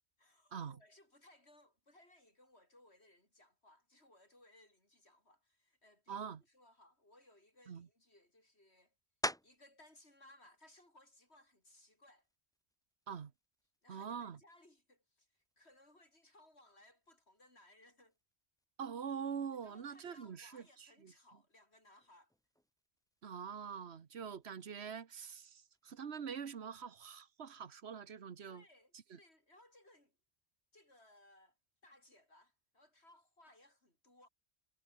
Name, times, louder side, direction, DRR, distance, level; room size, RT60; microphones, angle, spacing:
voice 1, 0.2-8.9 9.4-12.3 13.8-18.2 19.6-22.3 28.5-30.2 30.7-31.6 31.8-34.3, left 1 dB, 80° left, 7.5 m, -65 dB
voice 2, 6.1-6.4 7.7-7.9 13.1-13.3 13.9-14.4 18.8-21.1 23.2-28.6 29.1-29.2, right 7 dB, 80° right, 1.4 m, -44 dB
sound 1, 9.2-9.8 10.4-14.8 15.3-20.5 20.8-26.4, equal, 5° left, 2.1 m, -50 dB
omnidirectional pair, 1.1 m